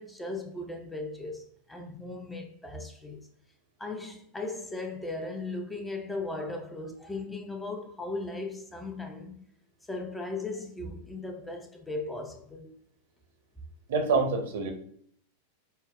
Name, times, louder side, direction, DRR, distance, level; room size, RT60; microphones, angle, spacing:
voice 1, 0.0-3.3 3.8-9.5 9.9-12.7, left 2 dB, 10° left, 0.4 m, -37 dB
voice 2, 13.9-14.7, right 4 dB, 55° right, 0.7 m, -26 dB
5.3 x 2.1 x 2.3 m
figure-of-eight pair, 90°, 0 cm